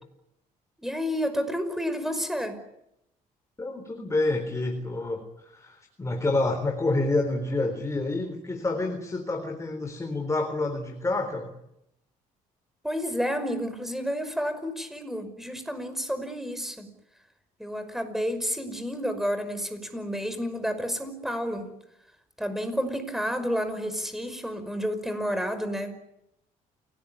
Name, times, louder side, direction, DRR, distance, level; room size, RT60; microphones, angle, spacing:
voice 1, 0.8-2.6 12.8-16.9 17.6-21.7 22.4-25.9, equal, ahead, 10 dB, 5.5 m, -30 dB
voice 2, 3.6-11.5, left 2 dB, 20° left, 5 dB, 3.9 m, -28 dB
29.0 x 18.5 x 9.9 m, 0.83 s
cardioid pair, 100°, 16 cm